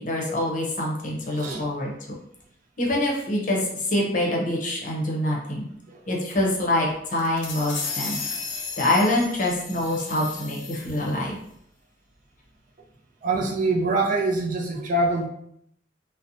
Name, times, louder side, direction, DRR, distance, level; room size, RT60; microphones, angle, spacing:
voice 1, 0.0-1.9 2.8-5.7 6.1-8.2 8.8-11.3, left 1 dB, 45° left, -2 dB, 0.7 m, -25 dB
voice 2, 1.3-1.7 5.9-6.0 13.2-15.3, right 2 dB, 45° right, 1 dB, 0.4 m, -24 dB
sound 1, 7.1-11.1, left 5 dB, 90° left, 0.6 m, -34 dB
2.7 x 2.1 x 2.6 m, 0.72 s
head